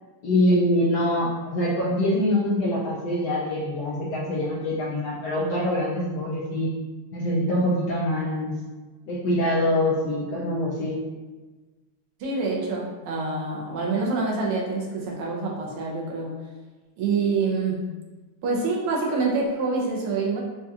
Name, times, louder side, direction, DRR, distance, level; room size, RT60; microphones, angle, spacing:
voice 1, 0.2-6.7 7.1-8.6 9.1-11.0, left 1 dB, 75° left, -5 dB, 0.9 m, -24 dB
voice 2, 12.2-16.3 17.0-17.8 18.4-20.4, right 4 dB, 90° right, -2 dB, 1.7 m, -26 dB
4.6 x 2.3 x 2.7 m, 1.3 s
omnidirectional pair, 2.3 m